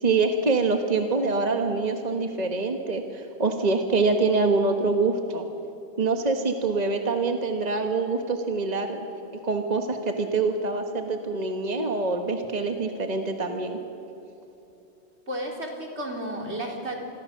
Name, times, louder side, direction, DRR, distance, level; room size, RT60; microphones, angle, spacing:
voice 1, 0.0-5.4 6.0-9.0 9.4-13.8, right 3 dB, 40° right, 5 dB, 1.4 m, -25 dB
voice 2, 15.3-17.0, right 1 dB, 80° right, 1 dB, 3.8 m, -32 dB
27.0 x 21.5 x 6.6 m, 2.9 s
omnidirectional pair, 1.1 m